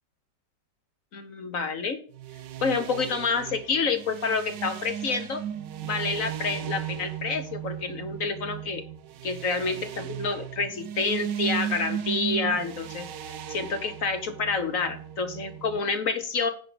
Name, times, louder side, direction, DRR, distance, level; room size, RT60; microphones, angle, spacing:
voice 1, 1.1-2.0 2.6-5.4 5.8-8.8 9.2-13.1 13.5-16.5, left 4 dB, 50° left, 8 dB, 1.5 m, -28 dB
sound 1, 2.1-15.8, right 10 dB, 80° right, 1.4 m, -36 dB
9.1 x 5.3 x 7.8 m, 0.42 s
omnidirectional pair, 1.9 m